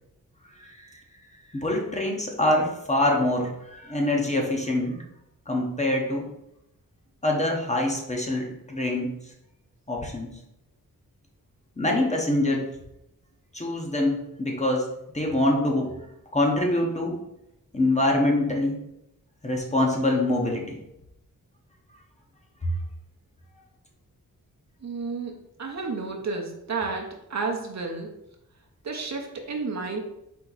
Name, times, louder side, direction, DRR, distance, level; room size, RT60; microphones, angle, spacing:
voice 1, 1.5-5.0 5.5-6.2 7.2-9.1 9.9-10.3 11.8-12.6 13.5-14.8 15.1-15.9 16.3-17.2 17.7-18.8 19.4-20.8, left 1 dB, 20° left, 0 dB, 0.9 m, -24 dB
voice 2, 24.8-25.3 25.6-28.1 28.8-30.0, right 4 dB, 50° right, 2 dB, 0.7 m, -31 dB
4.4 x 2.8 x 4.0 m, 0.83 s
wide cardioid pair, 105°, 35 cm